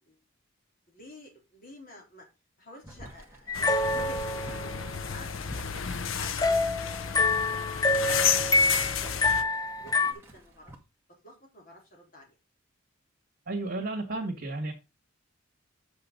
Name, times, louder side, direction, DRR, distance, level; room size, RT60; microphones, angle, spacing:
voice 1, 0.9-2.2 2.6-5.5 5.8-7.1 7.5-7.7 8.1-10.7 11.2-12.4, left 1 dB, 45° left, 0 dB, 4.1 m, -50 dB
Boiling, 2.8-10.8, right 1 dB, 15° right, 2.0 m, -50 dB
sound 1, 3.5-9.4, left 7 dB, 70° left, 0.7 m, -32 dB
sound 2, 3.5-5.0 6.4-10.1, left 3 dB, 20° left, 0.7 m, -26 dB
voice 2, 13.5-14.7, right 2 dB, 50° right, -2 dB, 2.2 m, -32 dB
8.5 x 6.5 x 3.9 m, 0.26 s
head